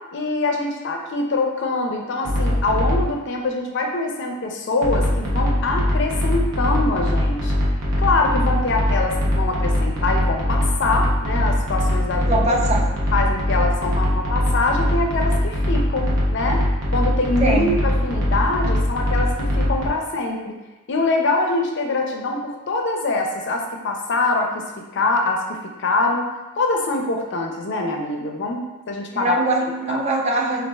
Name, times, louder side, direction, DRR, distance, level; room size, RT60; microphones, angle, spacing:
voice 1, 0.1-7.5 8.0-12.6 13.1-16.6 16.9-20.5 20.9-24.6 24.9-26.3 26.6-28.6 28.9-29.4 29.9-30.0, left 3 dB, 55° left, 2 dB, 0.4 m, -24 dB
sound 1, 2.2-3.1 4.8-19.9, left 1 dB, 85° right, 0.7 m, -21 dB
voice 2, 12.2-13.0 17.4-17.9 29.1-30.7, right 2 dB, 30° right, 0 dB, 0.3 m, -22 dB
4.2 x 2.4 x 2.2 m, 1.1 s
head